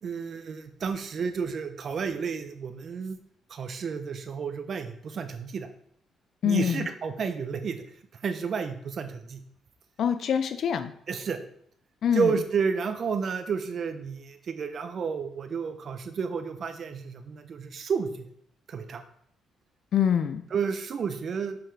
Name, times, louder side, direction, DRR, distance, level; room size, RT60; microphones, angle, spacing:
voice 1, 0.0-3.2 3.5-5.7 6.4-7.8 8.2-9.4 11.1-11.4 12.1-18.3 18.7-19.0 20.5-21.6, right 6 dB, 55° right, 8 dB, 0.8 m, -31 dB
voice 2, 6.4-6.9 10.0-10.9 12.0-12.3 19.9-20.4, left 8 dB, 65° left, 10 dB, 0.4 m, -25 dB
6.8 x 5.8 x 3.4 m, 0.66 s
cardioid pair, 90°, 0 cm